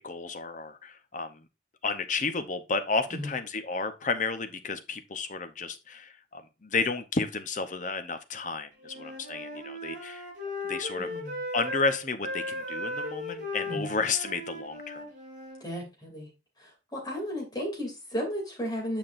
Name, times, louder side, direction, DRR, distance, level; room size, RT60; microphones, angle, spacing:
voice 1, 0.0-1.5 1.8-10.2 10.6-11.1 11.5-15.0, left 4 dB, 40° left, 8 dB, 0.7 m, -32 dB
Wind instrument woodwind instrument, 8.8-15.6, left 1 dB, 45° right, 4.6 m, -37 dB
voice 2, 11.0-11.3 13.7-13.9 15.6-16.3 16.6-19.0, equal, 20° left, 0 dB, 2.6 m, -34 dB
8.9 x 5.8 x 2.5 m, 0.27 s
head